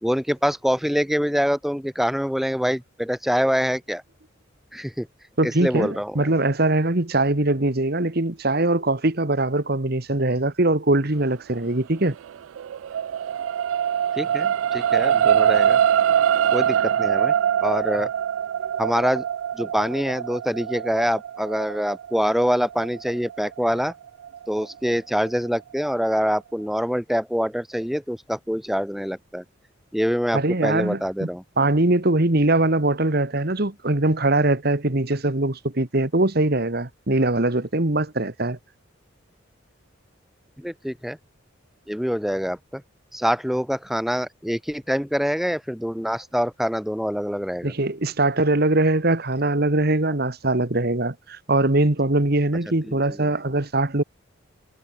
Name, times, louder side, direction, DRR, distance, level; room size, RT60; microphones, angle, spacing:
voice 1, 0.0-4.0 4.7-5.1 5.4-6.1 14.2-15.8 16.5-17.3 17.6-18.1 18.8-19.2 19.5-23.9 24.5-29.4 29.9-31.4 40.6-41.2 41.9-42.8 43.1-47.7 52.8-53.2, equal, ahead, 1.6 m, -25 dB
voice 2, 5.4-12.1 18.6-18.7 30.3-31.3 31.6-38.6 47.6-54.0, right 2 dB, 50° right, 1.7 m, -22 dB
sound 1, 12.1-24.6 25.2-25.3, right 9 dB, 80° right, 0.3 m, -23 dB
head